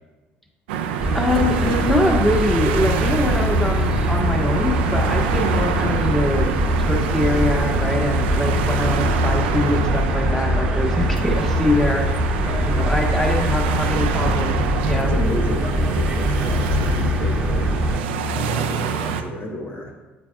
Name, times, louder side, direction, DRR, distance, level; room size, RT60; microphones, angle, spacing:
sound 1, 0.7-19.2, right 7 dB, 80° right, 0.5 m, -26 dB
sound 2, 1.0-18.0, equal, 15° right, 1.3 m, -22 dB
voice 1, 1.1-6.5 6.8-12.3 12.7-15.2, left 1 dB, 5° left, -1 dB, 1.8 m, -23 dB
voice 2, 12.4-13.2 15.0-17.7 18.3-19.9, left 1 dB, 40° left, 0 dB, 1.2 m, -32 dB
8.7 x 8.6 x 2.3 m, 1.2 s
hypercardioid pair, 60°, 6 cm